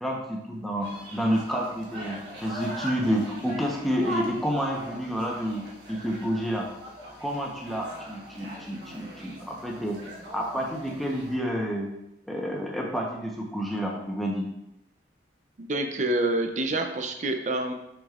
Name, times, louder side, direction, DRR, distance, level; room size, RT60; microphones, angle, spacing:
voice 1, 0.0-6.7 7.2-10.0 10.3-11.9 12.3-14.5, equal, ahead, -2 dB, 0.9 m, -29 dB
sound 1, 0.8-11.4, right 1 dB, 70° right, 1.2 m, -41 dB
voice 2, 15.6-17.7, right 2 dB, 40° right, 5 dB, 0.5 m, -27 dB
6.3 x 6.0 x 2.5 m, 0.85 s
head